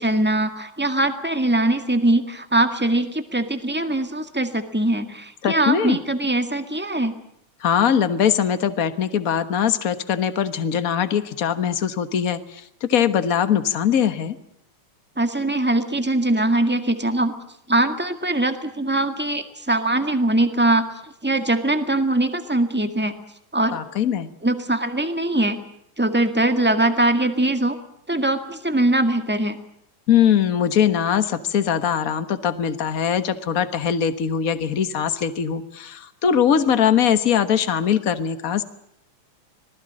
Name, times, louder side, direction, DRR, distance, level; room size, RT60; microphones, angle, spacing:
voice 1, 0.0-7.2 15.2-17.3 17.7-20.9 21.2-23.1 23.5-23.8 24.4-25.6 26.0-27.8 28.1-29.6, right 1 dB, 5° right, 8 dB, 1.0 m, -21 dB
voice 2, 5.4-6.0 7.6-14.4 23.7-24.3 30.1-38.6, left 8 dB, 60° left, 11 dB, 0.9 m, -21 dB
26.0 x 20.0 x 7.5 m, 0.74 s
omnidirectional pair, 3.5 m